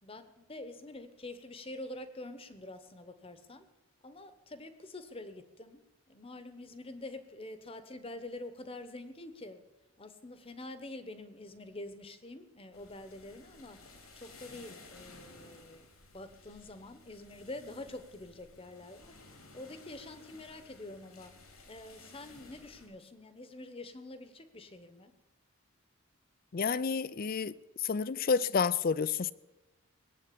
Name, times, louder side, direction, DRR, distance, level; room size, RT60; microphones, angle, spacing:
voice 1, 0.0-3.7 4.0-5.8 6.1-9.6 10.0-13.9 14.1-15.9 16.1-19.2 19.5-21.4 21.7-25.2, left 2 dB, 25° left, 1.0 m, -46 dB
sound 1, 12.7-22.9, left 3 dB, 85° left, 3.1 m, -56 dB
voice 2, 26.5-29.3, left 5 dB, 40° left, 0.4 m, -30 dB
19.5 x 8.1 x 8.5 m
head